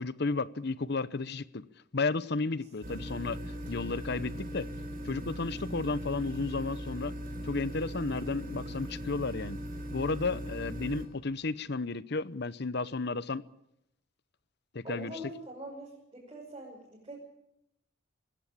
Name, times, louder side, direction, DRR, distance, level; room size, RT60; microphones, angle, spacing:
voice 1, 0.0-1.6 1.9-3.4 3.7-4.7 5.0-7.1 7.4-9.6 9.9-13.4 14.7-15.1, left 3 dB, 55° left, 0.8 m, -33 dB
sound 1, 2.8-11.1, equal, 45° right, 4.3 m, -39 dB
voice 2, 14.8-17.2, right 1 dB, 25° right, 6.2 m, -43 dB
21.5 x 16.5 x 8.7 m
head